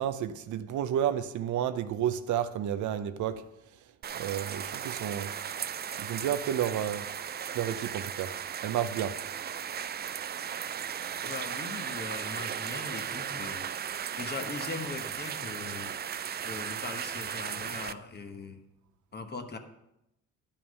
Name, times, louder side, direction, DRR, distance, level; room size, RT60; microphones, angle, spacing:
voice 1, 0.0-3.5 4.2-5.3 6.0-7.1 7.5-8.3 8.6-9.2, right 10 dB, 75° right, 0.7 m, -31 dB
sound 1, 4.0-17.9, right 8 dB, 35° right, 0.4 m, -36 dB
voice 2, 11.2-15.9 16.4-18.6 19.1-19.6, left 4 dB, 35° left, 1.2 m, -40 dB
11.5 x 5.8 x 5.4 m
cardioid pair, 90°, 30 cm